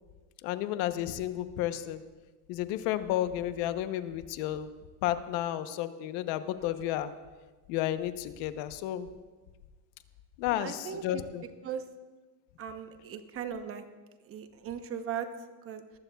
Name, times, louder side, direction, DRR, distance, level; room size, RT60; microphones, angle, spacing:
voice 1, 0.4-2.0 2.5-4.7 5.0-7.1 7.7-9.1 10.4-11.4, left 13 dB, 65° left, 11 dB, 0.9 m, -32 dB
voice 2, 10.5-11.2 11.6-11.8 12.6-13.9 14.2-15.3 15.6-15.8, right 8 dB, 30° right, 8 dB, 0.9 m, -38 dB
19.5 x 14.5 x 2.3 m, 1.3 s
cardioid pair, 140°, 45 cm